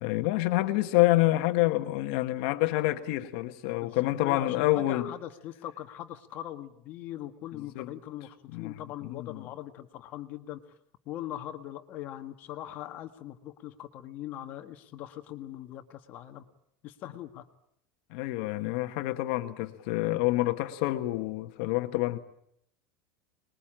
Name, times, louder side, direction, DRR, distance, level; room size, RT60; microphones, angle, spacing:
voice 1, 0.0-5.1 7.6-7.9 8.5-9.5 18.1-22.2, left 17 dB, 60° left, 7 dB, 1.3 m, -27 dB
voice 2, 3.8-10.6 11.1-16.4 16.8-17.5, left 12 dB, 35° left, 7 dB, 1.6 m, -41 dB
24.5 x 21.5 x 8.9 m, 0.73 s
supercardioid pair, 170°, 5 cm